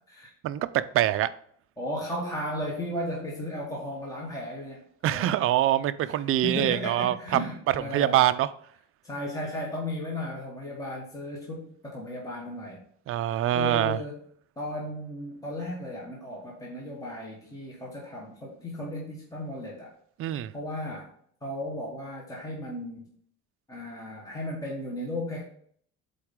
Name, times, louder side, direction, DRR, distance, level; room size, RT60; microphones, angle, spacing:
voice 1, 0.9-1.3 5.0-7.1 7.7-8.5 13.1-14.0 20.2-20.5, right 13 dB, 45° right, 0.4 m, -24 dB
voice 2, 1.8-5.4 6.0-6.2 6.4-8.3 9.0-12.8 13.5-14.2 14.6-19.9 20.5-21.1 21.4-23.1 23.7-25.4, left 1 dB, 10° left, 1.3 m, -35 dB
7.7 x 4.2 x 3.6 m
cardioid pair, 140°, 31 cm